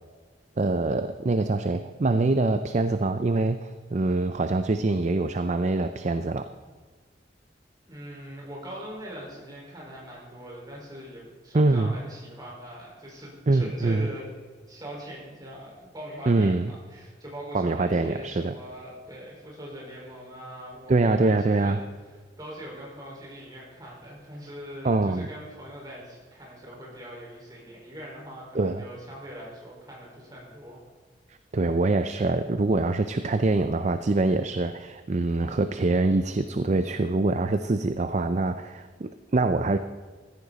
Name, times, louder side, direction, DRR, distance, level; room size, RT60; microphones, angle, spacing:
voice 1, 0.6-6.5 11.5-12.0 13.5-14.1 16.3-16.7 17.5-18.5 20.9-21.8 24.8-25.3 28.5-28.8 31.5-39.8, right 2 dB, 40° right, 10 dB, 0.5 m, -24 dB
voice 2, 7.8-14.3 14.7-21.8 22.4-30.8, equal, 20° right, -4 dB, 4.8 m, -41 dB
15.0 x 14.0 x 4.1 m, 1.5 s
head